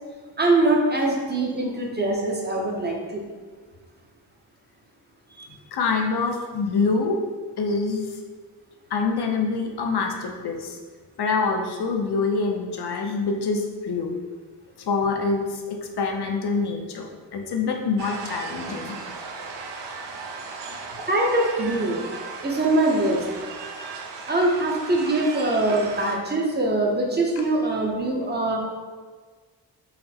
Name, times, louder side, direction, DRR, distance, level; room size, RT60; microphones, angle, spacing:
voice 1, 0.4-3.3 5.3-5.4 21.1-22.0 22.4-23.3 24.3-28.6, right 2 dB, 25° right, -1 dB, 0.6 m, -23 dB
voice 2, 5.7-7.2 7.6-8.1 8.9-10.8 11.2-14.1 14.8-17.1 17.3-19.0, left 4 dB, 65° left, 2 dB, 0.6 m, -25 dB
sound 1, 18.0-26.2, right 4 dB, 75° right, 0.6 m, -37 dB
4.0 x 2.1 x 4.2 m, 1.5 s
wide cardioid pair, 115°, 43 cm